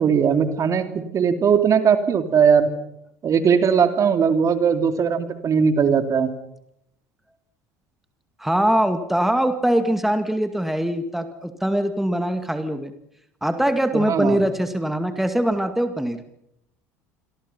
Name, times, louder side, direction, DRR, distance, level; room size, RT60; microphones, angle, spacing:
voice 1, 0.0-2.7 3.2-6.3 13.9-14.4, right 6 dB, 40° right, 8 dB, 3.0 m, -19 dB
voice 2, 8.4-12.9 13.4-16.2, right 1 dB, 5° right, 8 dB, 2.2 m, -22 dB
27.5 x 24.0 x 5.8 m, 0.77 s
hypercardioid pair, 70°, 8 cm